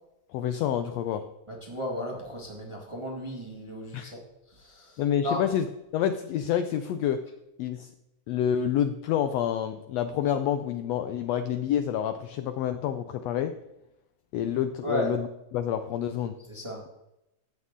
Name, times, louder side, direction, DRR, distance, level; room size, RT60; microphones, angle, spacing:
voice 1, 0.3-1.2 3.9-4.1 5.0-5.7 5.9-7.2 7.6-7.9 8.3-13.5 14.3-15.3 15.5-16.3, left 9 dB, 90° left, 9 dB, 1.4 m, -28 dB
voice 2, 1.5-4.2 4.5-5.4 14.8-15.1 16.5-16.8, left 1 dB, 15° right, -2 dB, 1.2 m, -34 dB
13.0 x 8.5 x 3.7 m, 0.88 s
omnidirectional pair, 3.6 m